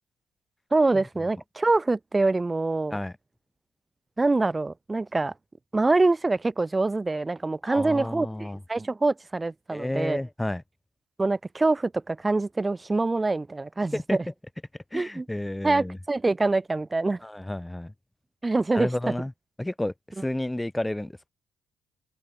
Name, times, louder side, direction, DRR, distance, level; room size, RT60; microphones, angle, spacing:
voice 1, 0.7-3.0 4.2-5.3 5.7-10.2 11.2-14.2 14.9-15.3 15.6-17.2 18.4-19.1, right 3 dB, 20° right, 1.0 m, -25 dB
voice 2, 7.6-8.6 9.7-10.6 13.9-14.2 14.9-16.0 17.2-17.9 18.7-19.3 19.6-21.3, left 1 dB, 10° left, 3.8 m, -31 dB
open air
cardioid pair, 90°, 0 cm